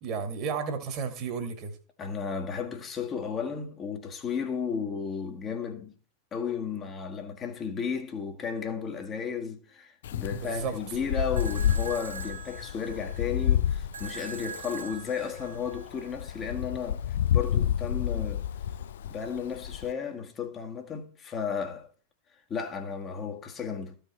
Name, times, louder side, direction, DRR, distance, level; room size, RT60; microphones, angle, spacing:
voice 1, 0.0-1.8 10.3-10.8, right 6 dB, 40° right, 1.9 m, -33 dB
voice 2, 2.0-6.0 6.3-18.5 19.0-21.9 22.5-24.0, left 6 dB, 25° left, 1.5 m, -34 dB
Wind, 10.0-19.9, left 10 dB, 60° left, 0.4 m, -30 dB
sound 1, 11.4-16.4, right 6 dB, 75° right, 1.6 m, -43 dB
14.0 x 5.2 x 4.3 m
figure-of-eight pair, 90°, 0 cm